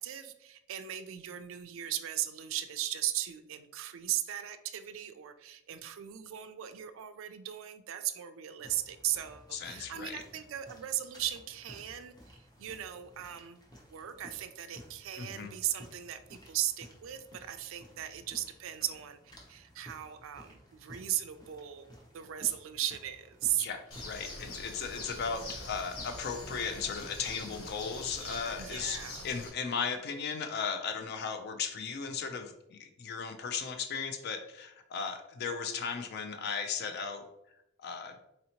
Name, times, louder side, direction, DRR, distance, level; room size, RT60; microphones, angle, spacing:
voice 1, 0.0-13.6 13.9-23.7 28.6-29.2, right 12 dB, 65° right, 10 dB, 0.3 m, -37 dB
sound 1, 8.6-27.9, equal, 20° left, 0.7 m, -55 dB
voice 2, 9.5-10.2 15.2-15.5 23.6-29.0 29.2-37.3 37.8-38.2, left 6 dB, 50° left, 6 dB, 0.4 m, -36 dB
Bird, 23.9-29.5, left 2 dB, 85° left, 0.8 m, -44 dB
4.1 x 2.7 x 2.8 m, 0.84 s
head